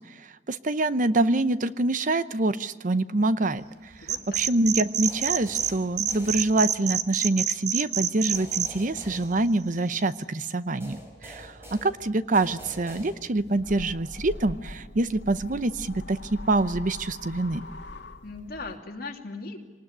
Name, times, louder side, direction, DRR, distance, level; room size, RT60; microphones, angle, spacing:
voice 1, 0.5-3.6 4.4-17.6, right 2 dB, 45° right, 13 dB, 0.8 m, -25 dB
voice 2, 4.0-4.4 18.2-19.6, left 3 dB, 55° left, 2 dB, 2.8 m, -38 dB
sound 1, 4.0-5.7 6.0-8.7, right 9 dB, 65° right, 1.1 m, -26 dB
sound 2, 5.1-7.0 8.3-10.1 10.8-13.6, equal, 15° right, 4.8 m, -46 dB
sound 3, 13.4-18.8, left 1 dB, 75° left, 2.1 m, -42 dB
24.5 x 19.5 x 10.0 m, 1.3 s
head